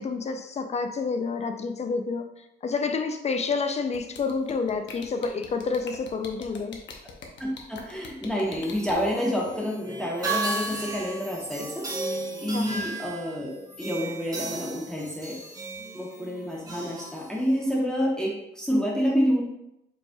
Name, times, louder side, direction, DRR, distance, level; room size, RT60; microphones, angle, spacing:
voice 1, 0.0-6.8 12.5-12.8, left 4 dB, 35° left, 6 dB, 0.4 m, -29 dB
sound 1, 3.9-8.9, left 5 dB, 70° left, 0.7 m, -43 dB
voice 2, 7.4-11.9 12.4-15.4 15.9-19.4, equal, 5° left, -4 dB, 0.9 m, -28 dB
sound 2, 8.3-17.8, right 2 dB, 20° right, 0.9 m, -35 dB
5.1 x 3.2 x 2.3 m, 0.84 s
cardioid pair, 90°, 20 cm